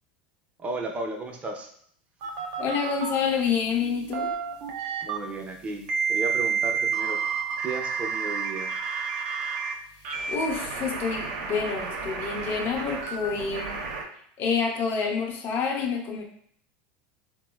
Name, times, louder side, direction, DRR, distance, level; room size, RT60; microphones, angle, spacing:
voice 1, 0.6-1.7 5.0-7.2 7.6-8.7, right 3 dB, 25° right, 2 dB, 0.5 m, -34 dB
sound 1, 2.2-3.1 3.8-5.2 5.9-9.7 10.0-14.0, right 6 dB, 75° right, 0.6 m, -30 dB
voice 2, 2.6-4.3 10.3-13.8 14.4-16.2, left 5 dB, 45° left, 1 dB, 0.6 m, -28 dB
3.9 x 2.0 x 2.2 m, 0.64 s
supercardioid pair, 120°, 5 cm